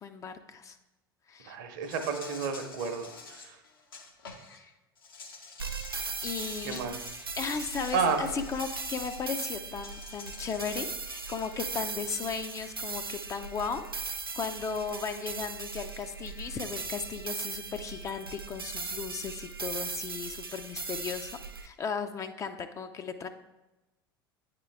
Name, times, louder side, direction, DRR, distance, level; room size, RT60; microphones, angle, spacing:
voice 1, 0.0-0.8 1.3-1.6 4.6-4.7 6.2-6.8 7.4-23.3, left 6 dB, 25° left, 8 dB, 0.4 m, -36 dB
voice 2, 1.5-3.6 6.6-7.0 7.9-8.2, right 5 dB, 55° right, 6 dB, 0.8 m, -31 dB
Insect, 1.8-4.6 5.0-9.2 9.8-11.8, left 4 dB, 75° left, 0.9 m, -48 dB
sound 1, 5.6-21.7, right 4 dB, 85° right, 0.4 m, -38 dB
9.1 x 3.7 x 3.4 m, 1.0 s
figure-of-eight pair, 75°, 12 cm